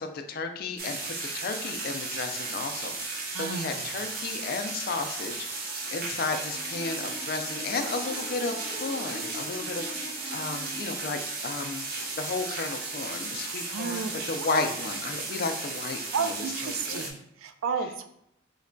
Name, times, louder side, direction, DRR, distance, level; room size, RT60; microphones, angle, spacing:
voice 1, 0.0-5.3 5.9-17.1, left 3 dB, 50° left, 6 dB, 0.3 m, -33 dB
sound 1, 0.8-17.1, right 3 dB, 45° right, 0.6 m, -35 dB
voice 2, 3.3-3.9 13.7-14.1 14.4-14.7 16.1-18.0, right 5 dB, 90° right, 8 dB, 0.4 m, -32 dB
sound 2, 6.5-11.2, left 1 dB, 5° left, 0.9 m, -43 dB
3.1 x 2.2 x 3.7 m, 0.76 s
head